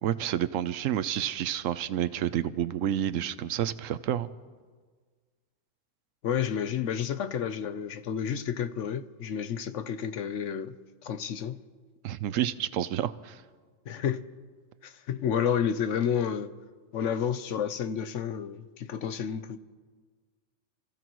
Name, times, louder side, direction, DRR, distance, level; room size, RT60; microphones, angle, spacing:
voice 1, 0.0-4.3 12.0-13.4, right 11 dB, 90° right, 1.0 m, -29 dB
voice 2, 6.2-10.8 11.0-11.6 13.9-14.3 14.8-16.5 16.9-19.6, left 8 dB, 75° left, 1.1 m, -30 dB
29.5 x 15.0 x 3.1 m
omnidirectional pair, 1.3 m